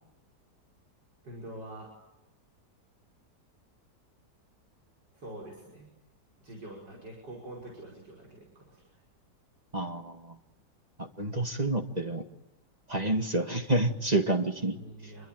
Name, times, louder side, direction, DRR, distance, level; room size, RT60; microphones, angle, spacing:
voice 1, 1.2-1.9 5.1-5.9 6.4-9.0 14.7-15.3, right 1 dB, 90° right, -2 dB, 6.3 m, -45 dB
voice 2, 9.7-10.4 11.2-12.2 12.9-14.8, right 2 dB, 25° right, 4 dB, 1.9 m, -28 dB
27.5 x 23.0 x 9.2 m, 0.94 s
omnidirectional pair, 1.8 m